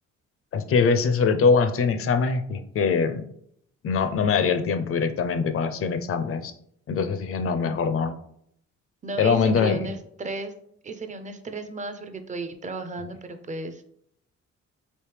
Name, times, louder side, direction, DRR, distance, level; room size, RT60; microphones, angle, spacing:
voice 1, 0.5-3.2 3.8-6.5 6.9-8.1 9.2-9.8, left 5 dB, 50° left, 9 dB, 0.4 m, -23 dB
voice 2, 7.6-8.0 9.0-10.5 10.8-13.9, right 3 dB, 25° right, 8 dB, 0.4 m, -34 dB
3.2 x 2.8 x 3.2 m, 0.69 s
cardioid pair, 90°, 30 cm